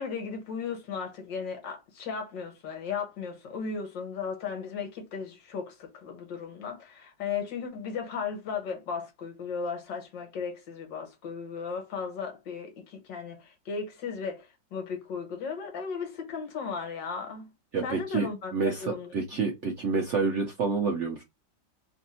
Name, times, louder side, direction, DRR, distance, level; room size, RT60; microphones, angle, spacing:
voice 1, 0.0-17.5 17.8-19.1, left 5 dB, 75° left, 1.6 m, -36 dB
voice 2, 17.7-21.2, right 4 dB, 65° right, 0.7 m, -28 dB
3.4 x 2.6 x 4.2 m
omnidirectional pair, 2.0 m